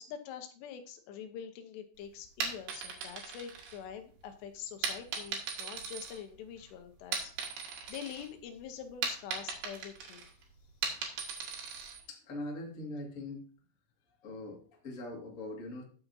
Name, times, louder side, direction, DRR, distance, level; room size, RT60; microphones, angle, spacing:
voice 1, 0.0-10.3, left 8 dB, 80° left, 8 dB, 3.1 m, -45 dB
sound 1, 2.2-4.2 4.8-6.6 7.0-8.3 8.6-12.0, right 5 dB, 80° right, 4.0 m, -38 dB
voice 2, 12.1-13.4 14.2-15.8, left 2 dB, 35° left, 0 dB, 1.2 m, -42 dB
13.5 x 7.2 x 2.7 m, 0.44 s
omnidirectional pair, 4.9 m